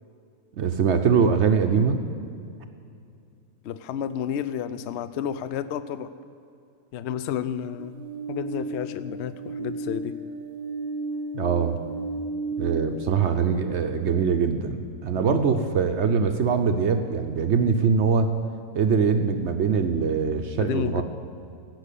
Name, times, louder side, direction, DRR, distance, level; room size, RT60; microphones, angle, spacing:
voice 1, 0.6-2.0 11.3-11.8 12.6-18.3 18.7-21.0, right 6 dB, 60° right, 7 dB, 0.8 m, -23 dB
voice 2, 3.6-6.1 6.9-10.2 15.1-15.4 20.6-21.0, left 9 dB, 75° left, 13 dB, 0.6 m, -31 dB
sound 1, 7.8-13.6, right 2 dB, 85° right, 1.2 m, -34 dB
16.5 x 6.3 x 8.3 m, 2.5 s
omnidirectional pair, 1.7 m